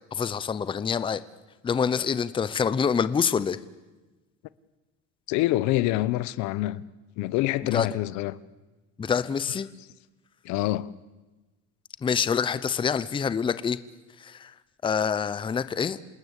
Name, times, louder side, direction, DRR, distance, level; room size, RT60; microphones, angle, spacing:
voice 1, 0.1-1.2 1.6-3.6 7.7-7.9 9.0-9.7 12.0-13.8 14.2-14.5 14.8-16.0, left 6 dB, 15° left, 0.7 m, -26 dB
voice 2, 5.3-6.8 7.2-8.4 10.4-10.9, left 16 dB, 70° left, 1.0 m, -26 dB
27.5 x 20.0 x 8.2 m
cardioid pair, 155°, 29 cm